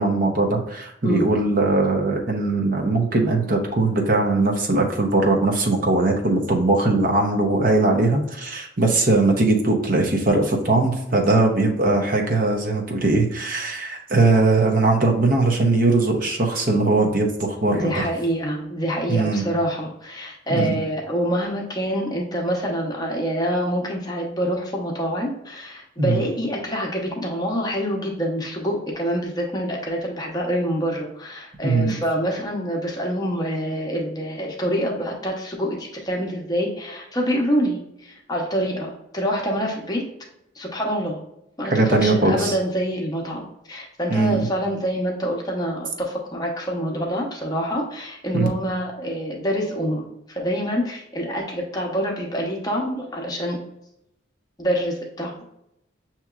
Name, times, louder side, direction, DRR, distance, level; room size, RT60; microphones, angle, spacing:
voice 1, 0.0-18.1 19.1-19.4 20.5-20.8 26.0-26.2 31.6-32.0 41.7-42.6 44.1-44.5 48.3-48.5, right 2 dB, 45° right, 1 dB, 0.7 m, -20 dB
voice 2, 17.7-40.0 40.5-41.2 41.6-53.6 54.6-55.4, equal, 20° left, -1 dB, 0.8 m, -26 dB
6.9 x 2.9 x 2.4 m, 0.81 s
head